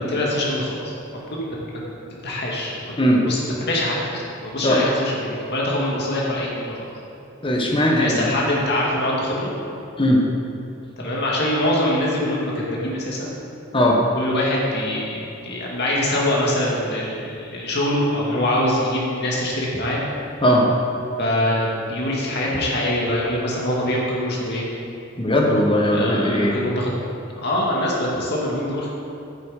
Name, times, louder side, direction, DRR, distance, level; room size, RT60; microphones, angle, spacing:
voice 1, 0.1-0.9 1.3-1.8 2.2-3.0 3.2-6.7 7.8-9.5 11.0-13.3 14.1-20.0 21.2-24.7 25.9-26.9 27.4-28.9, left 1 dB, 55° left, -4 dB, 2.1 m, -24 dB
voice 2, 7.4-8.4 10.0-10.2 13.7-14.0 20.4-20.6 25.2-26.6, equal, 25° left, -1 dB, 1.3 m, -18 dB
8.7 x 8.1 x 5.1 m, 2.8 s
head